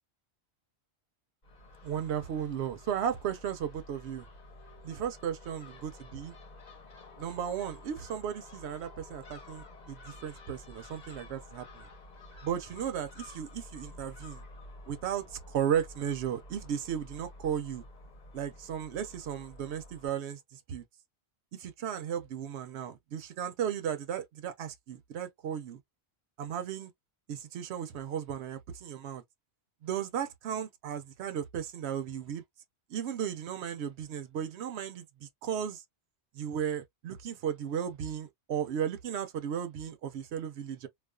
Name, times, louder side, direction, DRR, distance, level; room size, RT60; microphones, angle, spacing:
Crow / Gull seagull, 1.4-20.1, left 2 dB, 45° left, 0.8 m, -51 dB
voice 1, 1.8-4.3 4.8-6.3 7.2-11.9 12.4-14.4 14.9-17.8 18.3-20.8 21.5-25.8 26.4-26.9 27.3-29.2 29.8-32.4 32.9-35.8 36.3-40.9, right 9 dB, 75° right, 0.9 m, -35 dB
2.4 x 2.3 x 2.2 m
omnidirectional pair, 1.1 m